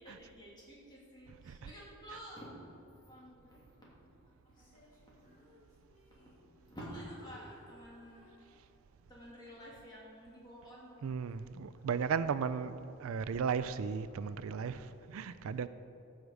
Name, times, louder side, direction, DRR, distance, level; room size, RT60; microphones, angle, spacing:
voice 1, 0.0-2.5 2.8-4.2 4.4-4.9 5.2-5.9 6.1-8.3 9.1-11.2, equal, 20° left, 2.7 m, -51 dB
Female singing, 4.4-6.7 7.0-9.0 9.6-9.8, left 2 dB, 40° left, 3.0 m, -63 dB
voice 2, 11.0-12.7 13.0-15.7, right 6 dB, 75° right, 0.4 m, -35 dB
14.5 x 6.5 x 4.9 m
head